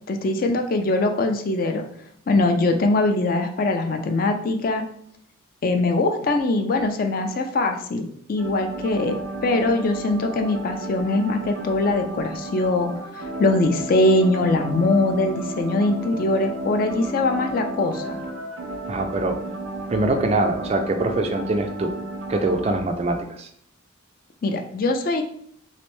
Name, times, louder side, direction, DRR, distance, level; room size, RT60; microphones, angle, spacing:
voice 1, 0.1-1.9 2.3-4.8 5.6-9.1 9.4-18.2 24.4-25.2, left 2 dB, 45° left, 5 dB, 0.4 m, -22 dB
sound 1, 8.4-22.8, right 2 dB, 85° right, 0.6 m, -33 dB
voice 2, 18.9-19.4 19.9-21.9 22.3-23.5, right 2 dB, 30° right, 5 dB, 0.3 m, -23 dB
3.2 x 2.9 x 3.1 m, 0.66 s
head